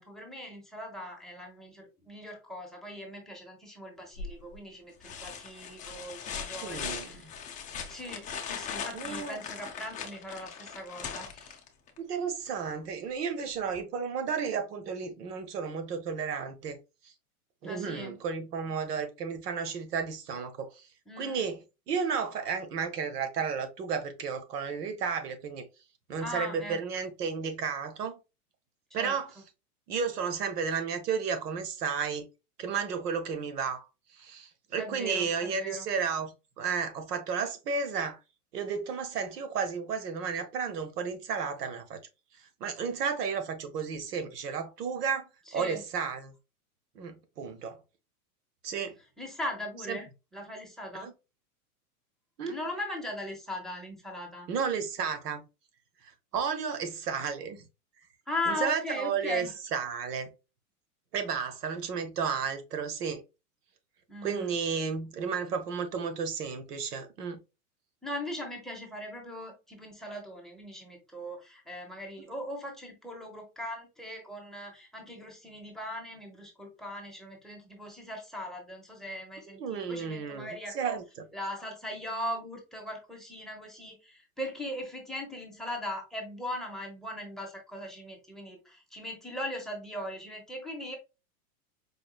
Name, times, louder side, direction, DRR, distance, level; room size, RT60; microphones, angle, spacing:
voice 1, 0.0-7.4 7.9-11.6 17.6-18.2 21.1-21.4 26.2-26.8 28.9-29.2 34.7-35.8 45.5-45.8 49.2-51.1 52.5-54.5 58.3-59.6 64.1-64.5 68.0-81.0 81.3-91.0, left 1 dB, ahead, 0.9 m, -39 dB
sound 1, 4.2-4.6 5.0-12.0 13.8-13.9, left 7 dB, 15° left, 0.5 m, -39 dB
voice 2, 6.6-7.3 8.9-9.4 12.0-16.8 17.6-20.8 21.2-21.6 21.9-25.7 26.1-28.2 28.9-29.3 29.9-32.3 32.6-33.8 34.2-36.3 36.6-38.2 38.5-42.0 42.6-45.2 45.5-46.3 46.9-47.8 48.6-48.9 49.9-50.0 50.9-51.1 52.4-52.6 54.5-55.4 56.3-57.6 58.5-60.3 61.1-63.2 64.2-67.4 79.6-81.3, right 6 dB, 85° right, 1.0 m, -33 dB
5.0 x 2.6 x 2.3 m
hypercardioid pair, 125°, 46 cm